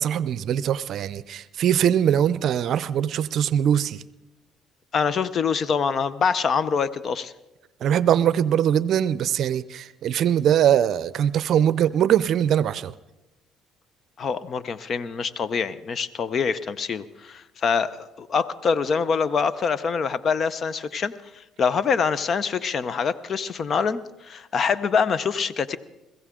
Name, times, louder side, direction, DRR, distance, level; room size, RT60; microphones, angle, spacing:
voice 1, 0.0-4.0 7.8-12.9, right 10 dB, 60° right, 18 dB, 0.5 m, -22 dB
voice 2, 4.9-7.3 14.2-25.8, left 6 dB, 50° left, 16 dB, 0.7 m, -25 dB
21.0 x 15.5 x 3.7 m, 1.0 s
supercardioid pair, 65°, 0 cm